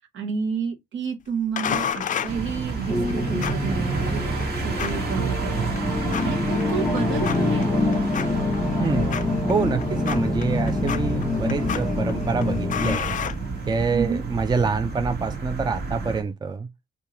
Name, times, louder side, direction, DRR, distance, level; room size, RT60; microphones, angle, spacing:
voice 1, 0.1-5.8 6.2-8.0 13.9-14.2, right 6 dB, 75° right, 1.2 m, -30 dB
sound 1, 1.6-14.0, left 8 dB, 40° left, 0.4 m, -34 dB
sound 2, 2.3-16.2, right 4 dB, 55° right, 1.4 m, -30 dB
sound 3, 2.9-13.0, left 3 dB, 15° left, 1.0 m, -26 dB
voice 2, 8.8-9.1 9.5-13.2 13.7-16.7, right 4 dB, 20° right, 0.5 m, -26 dB
3.5 x 2.7 x 2.9 m
cardioid pair, 90°, 20 cm